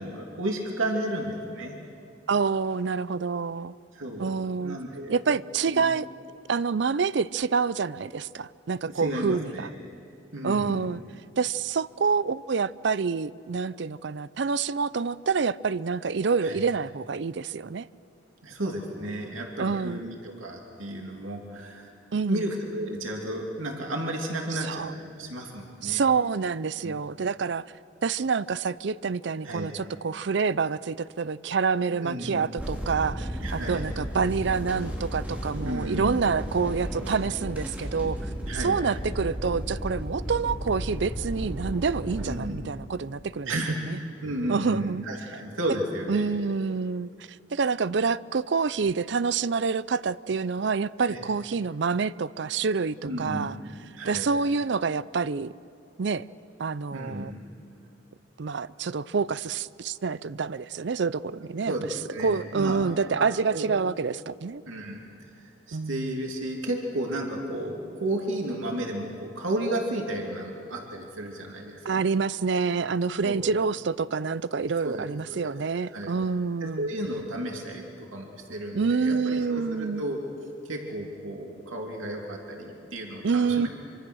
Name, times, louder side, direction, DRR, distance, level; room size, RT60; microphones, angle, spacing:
voice 1, 0.0-1.7 3.9-5.2 5.7-5.8 8.8-9.7 10.3-10.8 16.4-16.6 18.4-21.9 22.3-26.0 26.8-26.9 29.4-29.7 31.9-32.4 33.4-33.9 35.6-36.3 38.5-38.8 42.2-42.6 43.5-46.3 51.0-51.3 53.0-53.7 54.0-54.3 56.9-57.3 61.7-62.8 63.1-63.6 64.7-65.0 65.7-72.0 73.2-73.5 74.8-75.5 75.9-76.1 76.6-80.2 80.6-83.7, right 1 dB, 90° right, 2.8 m, -33 dB
voice 2, 2.3-3.7 4.2-4.8 5.1-6.1 6.5-9.7 10.4-11.0 11.4-17.9 19.6-20.0 22.1-22.5 24.5-24.9 25.8-27.7 28.0-38.3 38.6-43.6 43.9-44.0 44.5-45.1 46.1-47.1 47.5-53.6 54.1-55.5 56.0-56.2 56.6-57.3 58.4-61.7 62.2-64.6 65.7-66.2 71.8-76.9 78.7-80.0 83.2-83.7, right 5 dB, 60° right, 0.5 m, -27 dB
sound 1, 32.6-42.3, equal, 5° right, 3.5 m, -34 dB
25.5 x 25.0 x 6.4 m
head